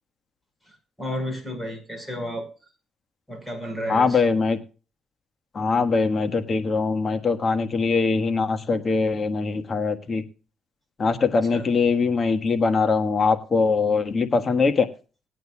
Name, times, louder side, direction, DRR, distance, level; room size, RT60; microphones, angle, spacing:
voice 1, 1.0-2.5 3.3-4.2 11.5-11.6, equal, 10° left, 4 dB, 5.1 m, -31 dB
voice 2, 3.9-4.6 5.5-10.2 11.0-14.9, left 4 dB, 40° left, 8 dB, 1.4 m, -22 dB
20.0 x 9.2 x 2.3 m, 0.34 s
cardioid pair, 90°, 0 cm